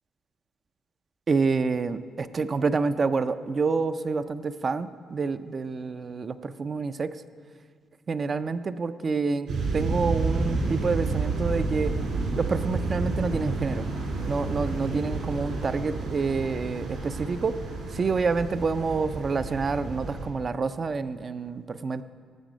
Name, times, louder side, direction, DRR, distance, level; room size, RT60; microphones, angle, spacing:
voice 1, 1.3-7.2 8.1-11.9 12.4-13.9 14.2-17.6 17.9-22.0, right 4 dB, 40° right, 12 dB, 0.5 m, -28 dB
sound 1, 9.5-20.3, right 3 dB, 70° right, 3.2 m, -30 dB
18.0 x 7.4 x 5.1 m, 2.1 s
cardioid pair, 90°, 0 cm